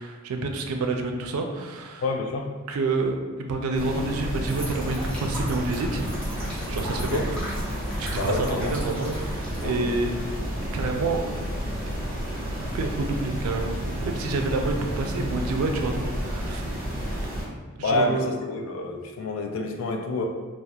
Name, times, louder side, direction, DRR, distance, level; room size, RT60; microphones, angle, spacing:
voice 1, 0.0-2.0 2.7-6.1 6.7-7.4 8.0-10.2 10.7-11.2 11.6-11.9 12.5-16.6 17.8-18.3, right 3 dB, 90° right, 4 dB, 0.3 m, -28 dB
voice 2, 2.0-2.6 7.0-7.3 8.1-8.7 9.6-9.8 17.8-20.3, left 2 dB, 65° left, 3 dB, 0.3 m, -28 dB
sound 1, 3.7-17.4, equal, 45° right, 0.9 m, -31 dB
sound 2, 4.5-9.8, equal, 5° left, 0.7 m, -39 dB
2.7 x 2.0 x 2.3 m, 1.3 s
head